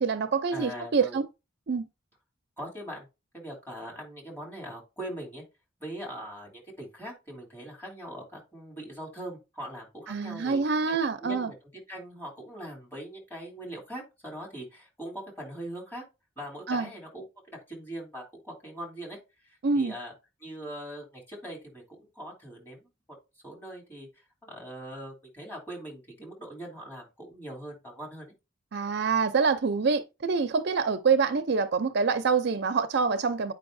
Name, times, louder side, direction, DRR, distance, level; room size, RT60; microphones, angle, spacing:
voice 1, 0.0-1.3 1.7-1.9 10.1-11.5 16.7-16.9 19.6-19.9 28.7-33.5, right 5 dB, 55° right, 0.5 m, -26 dB
voice 2, 0.5-1.2 2.6-3.1 3.3-5.4 5.8-10.6 10.9-11.5 11.9-16.0 16.4-19.2 19.4-20.1 20.4-22.9 23.4-24.1 24.4-28.3, right 1 dB, 10° left, 3.1 m, -41 dB
8.8 x 5.3 x 2.6 m
head